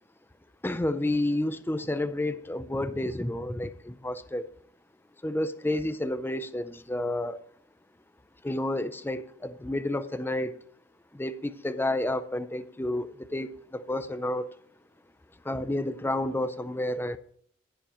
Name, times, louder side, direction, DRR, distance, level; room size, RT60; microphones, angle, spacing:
voice 1, 0.6-4.4 5.2-7.4 8.4-10.5 11.1-14.5 15.4-17.2, left 1 dB, 10° left, 0.5 m, -30 dB
19.0 x 7.1 x 3.1 m
head